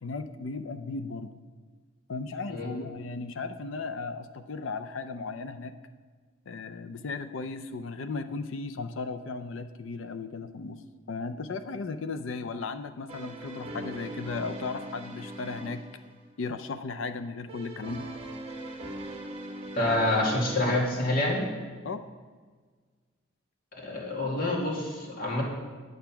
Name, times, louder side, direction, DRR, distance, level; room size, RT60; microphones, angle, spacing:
voice 1, 0.0-1.3 2.1-5.7 6.5-10.8 11.1-15.8 16.4-18.1 21.8-22.1, left 4 dB, 75° left, 9 dB, 0.5 m, -36 dB
sound 1, 13.1-16.3 17.5-20.8, right 1 dB, 30° right, 1.4 m, -40 dB
voice 2, 19.7-21.5 23.8-25.4, left 1 dB, 50° left, -2 dB, 2.0 m, -27 dB
8.9 x 7.9 x 5.8 m, 1.5 s
head